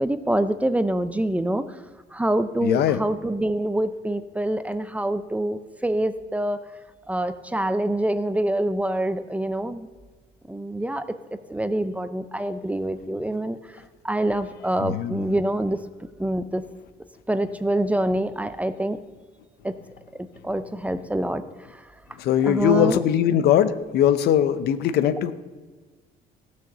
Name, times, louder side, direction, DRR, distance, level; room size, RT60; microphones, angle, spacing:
voice 1, 0.0-1.6 2.1-6.6 7.1-9.9 10.5-11.2 11.5-13.6 14.0-15.8 16.2-16.6 17.3-19.0 19.6-19.8 20.4-21.4 21.7-21.8 22.4-23.0, right 1 dB, 10° right, 11 dB, 0.6 m, -25 dB
voice 2, 2.6-3.0 14.8-15.3 22.2-25.3, left 10 dB, 70° left, 12 dB, 0.7 m, -21 dB
14.5 x 6.5 x 6.7 m, 1.4 s
cardioid pair, 110°, 17 cm